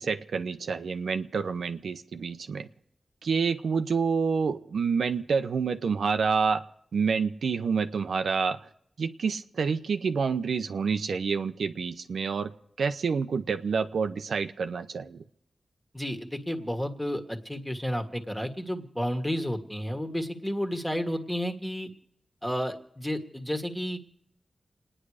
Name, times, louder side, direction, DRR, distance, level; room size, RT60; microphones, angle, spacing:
voice 1, 0.0-2.7 3.2-6.6 6.9-8.6 9.0-12.5 12.8-15.2, right 5 dB, 90° right, 8 dB, 0.7 m, -28 dB
voice 2, 15.9-21.9 22.4-24.0, equal, 5° left, 5 dB, 1.7 m, -31 dB
28.5 x 9.9 x 4.9 m, 0.72 s
wide cardioid pair, 90°, 0 cm